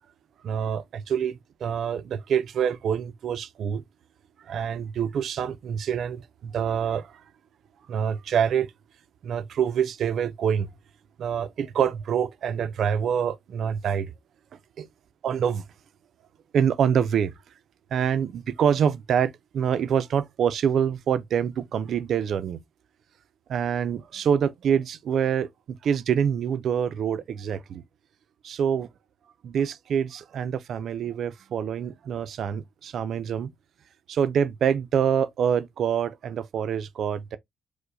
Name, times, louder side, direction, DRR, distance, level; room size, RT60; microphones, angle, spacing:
voice 1, 0.4-3.8 4.4-7.2 7.9-8.7 9.2-10.7 11.2-14.1 14.8-14.9 15.2-15.6 16.5-17.3 17.9-22.6 23.5-27.8 28.4-28.9 29.4-33.5 34.1-37.4, right 8 dB, 65° right, 0.3 m, -26 dB
4.6 x 2.0 x 2.5 m
cardioid pair, 90°, 0 cm